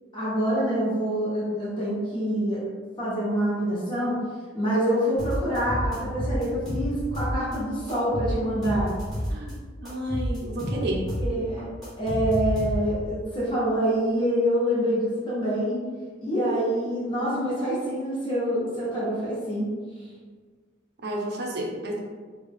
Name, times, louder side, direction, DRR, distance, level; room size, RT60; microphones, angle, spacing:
voice 1, 0.1-2.7 3.0-4.2 4.5-8.9 11.2-11.7 12.0-15.8 16.2-19.7, equal, 25° left, -9 dB, 1.3 m, -26 dB
sound 1, 5.2-7.6 7.9-9.5 9.9-13.1, equal, ahead, 1.5 m, -29 dB
voice 2, 9.8-11.0 21.0-22.0, right 1 dB, 55° right, -1 dB, 0.6 m, -31 dB
3.2 x 2.3 x 3.6 m, 1.5 s
head